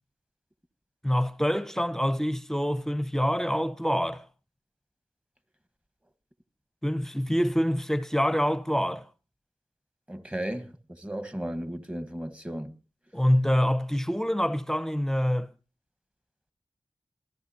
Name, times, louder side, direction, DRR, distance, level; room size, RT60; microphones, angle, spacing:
voice 1, 1.0-4.2 6.8-9.1 13.1-15.5, equal, 5° left, 0.9 m, -26 dB
voice 2, 10.1-12.7, right 1 dB, 15° right, 1.4 m, -35 dB
27.0 x 12.0 x 2.8 m
wide cardioid pair, 70°, 10 cm